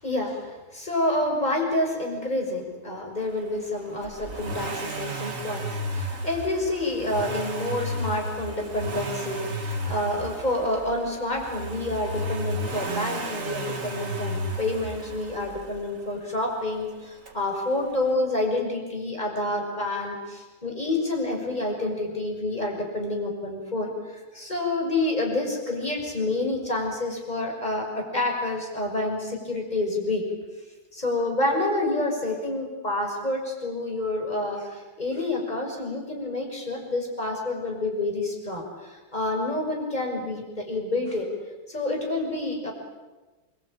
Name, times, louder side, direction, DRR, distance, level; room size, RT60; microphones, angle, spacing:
voice 1, 0.0-30.2 30.9-41.3 41.7-42.7, left 2 dB, 20° left, 1 dB, 6.3 m, -28 dB
Accelerating revving vroom, 4.0-16.0 17.3-17.4, right 1 dB, 40° right, 3.1 m, -33 dB
28.5 x 23.5 x 8.9 m, 1.2 s
omnidirectional pair, 2.3 m